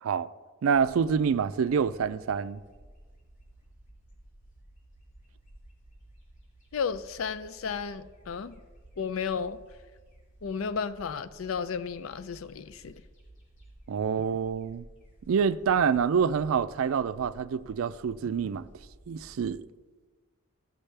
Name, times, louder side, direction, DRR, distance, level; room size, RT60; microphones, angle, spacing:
voice 1, 0.6-2.6 13.9-14.8 15.3-18.7 19.1-19.6, right 6 dB, 90° right, 0.4 m, -27 dB
sound 1, 0.7-19.6, right 1 dB, 65° left, 3.3 m, -55 dB
voice 2, 6.7-8.6 9.0-9.6 10.4-13.0, left 6 dB, 90° left, 0.5 m, -33 dB
15.0 x 6.4 x 3.3 m
head